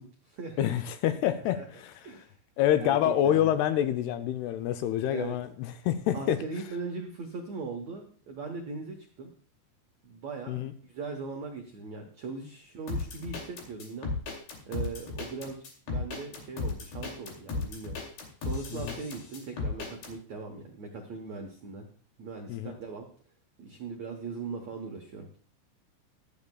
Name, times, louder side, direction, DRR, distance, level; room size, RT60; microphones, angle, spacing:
voice 1, 0.0-0.7 1.5-1.7 2.0-2.3 2.8-3.5 5.1-5.4 6.1-9.3 10.0-14.1 14.7-18.0 18.4-21.9 22.2-23.1 23.6-25.4, right 4 dB, 80° right, 2 dB, 1.5 m, -40 dB
voice 2, 0.6-2.1 2.6-6.4 10.5-10.7 18.7-19.0 22.5-22.8, left 11 dB, 80° left, 9 dB, 2.4 m, -27 dB
sound 1, 12.9-20.1, left 4 dB, 60° left, 4.2 m, -35 dB
23.0 x 8.6 x 2.3 m, 0.43 s
omnidirectional pair, 4.9 m